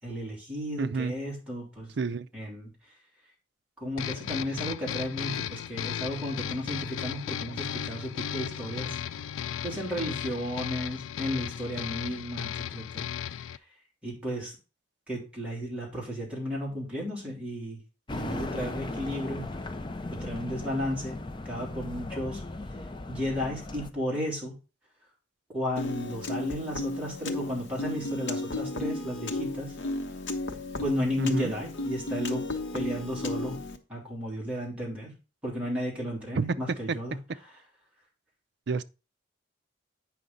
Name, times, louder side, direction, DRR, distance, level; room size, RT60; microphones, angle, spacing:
voice 1, 0.0-1.9 2.3-2.9 3.8-9.0 9.6-13.6 14.0-14.5 15.1-17.8 18.1-19.5 20.1-21.2 21.4-22.4 23.1-24.5 25.5-29.8 30.8-32.5 32.7-33.6 33.9-35.1 35.4-37.2 37.4-37.5, equal, 5° right, 3.1 m, -34 dB
voice 2, 0.8-1.1 2.0-2.3 31.2-31.5 36.4-36.5 38.7-38.8, right 4 dB, 60° right, 0.5 m, -29 dB
sound 1, 4.0-13.6, left 9 dB, 85° left, 0.3 m, -35 dB
sound 2, 18.1-23.9, left 2 dB, 25° left, 0.5 m, -37 dB
Piano, 25.8-33.8, left 2 dB, 70° left, 0.9 m, -34 dB
8.5 x 5.8 x 3.9 m
head